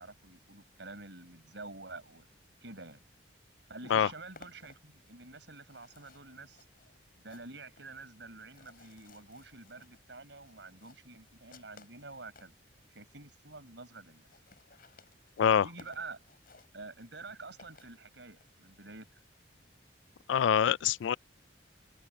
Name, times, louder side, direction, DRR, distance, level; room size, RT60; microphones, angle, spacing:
voice 1, 0.0-2.3 2.6-3.0 3.7-6.6 7.1-12.6 12.9-14.3 15.6-16.2 16.7-19.2, right 3 dB, 70° right, 4.9 m, -48 dB
sound 1, 4.4-12.6 13.2-13.3 13.5-13.6 13.8-13.9 14.1-18.5, left 3 dB, 50° left, 8.0 m, -60 dB
voice 2, 20.3-21.2, left 8 dB, 75° left, 0.3 m, -25 dB
open air
head